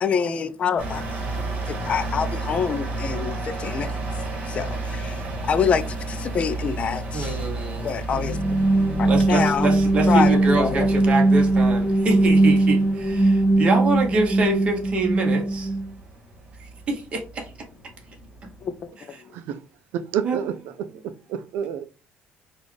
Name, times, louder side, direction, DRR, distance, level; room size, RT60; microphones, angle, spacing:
voice 1, 0.0-1.2 1.7-3.9 4.5-5.2 5.4-7.4 7.8-8.6 9.0-9.7 10.1-10.9 18.6-18.7, left 6 dB, 35° left, 0.4 m, -26 dB
sound 1, 0.8-18.8, right 2 dB, 50° right, 1.8 m, -33 dB
voice 2, 7.1-7.9 9.0-15.7 16.6-17.5 20.2-20.4, right 3 dB, 35° right, 1.1 m, -26 dB
sound 2, 8.1-15.9, right 2 dB, 10° left, 0.7 m, -20 dB
voice 3, 19.9-20.5 21.3-21.9, right 9 dB, 85° right, 0.4 m, -28 dB
4.1 x 2.4 x 3.2 m
cardioid pair, 140°, 4 cm